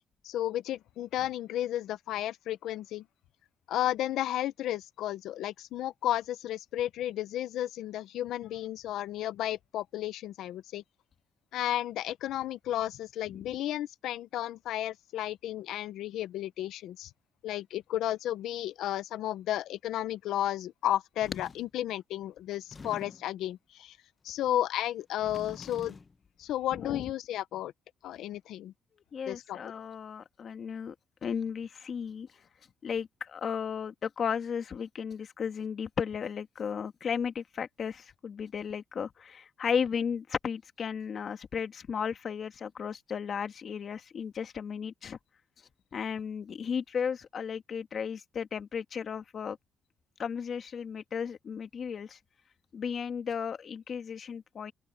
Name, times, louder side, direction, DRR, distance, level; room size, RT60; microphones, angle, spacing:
voice 1, 0.2-3.0 3.7-10.8 11.5-17.1 17.4-24.0 24.2-26.0 26.4-27.7 28.0-28.7 29.3-29.6, left 12 dB, 85° left, 0.9 m, -33 dB
sound 1, 21.2-21.7 22.5-23.4 25.0-26.2, left 4 dB, 30° left, 1.0 m, -46 dB
voice 2, 29.1-30.9 31.2-32.3 32.8-45.2 45.9-49.6 50.2-52.2 52.7-54.7, left 7 dB, 55° left, 1.7 m, -34 dB
open air
cardioid pair, 90°, 0 cm